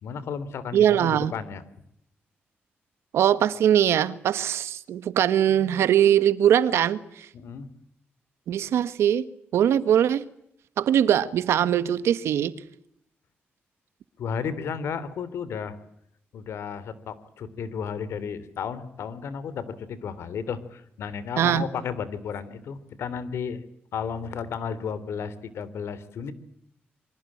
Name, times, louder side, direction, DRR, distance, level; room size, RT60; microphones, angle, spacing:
voice 1, 0.0-1.6 7.3-7.7 14.2-15.8 16.3-23.6 23.9-26.3, left 6 dB, 85° left, 3.3 m, -33 dB
voice 2, 0.7-1.3 3.1-7.0 8.5-9.2 9.5-10.2 10.8-12.5 21.4-21.6, right 10 dB, 90° right, 1.6 m, -21 dB
27.5 x 24.5 x 8.8 m
cardioid pair, 75°, 4 cm